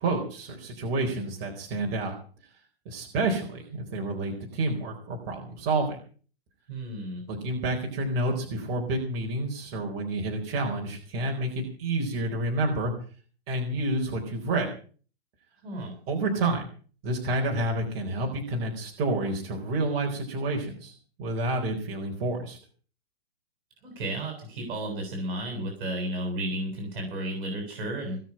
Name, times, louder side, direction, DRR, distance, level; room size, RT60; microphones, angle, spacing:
voice 1, 0.0-2.1 2.9-6.0 7.3-12.9 13.5-14.7 16.1-16.7 17.0-20.9 21.2-22.6, right 2 dB, 30° right, 0 dB, 4.3 m, -29 dB
voice 2, 6.7-7.2 15.6-16.0 23.8-28.2, right 1 dB, 55° right, 3 dB, 7.9 m, -33 dB
20.0 x 7.0 x 8.8 m, 0.42 s
hypercardioid pair, 150°, 31 cm